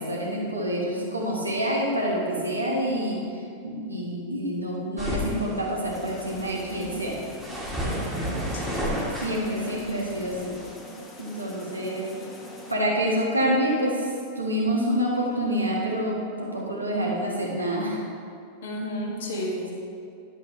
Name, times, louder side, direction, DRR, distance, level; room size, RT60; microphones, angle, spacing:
voice 1, 0.0-3.2 3.6-7.2 9.2-10.6 11.2-12.1 12.7-18.0, equal, 85° right, -3 dB, 1.7 m, -27 dB
sound 1, 5.0-10.7, equal, ahead, 1.8 m, -33 dB
sound 2, 5.9-12.7, left 1 dB, 15° left, 1.3 m, -44 dB
voice 2, 7.8-8.9 18.6-19.7, equal, 60° left, -1 dB, 1.6 m, -33 dB
11.0 x 7.6 x 3.2 m, 2.5 s
figure-of-eight pair, 90°, 0 cm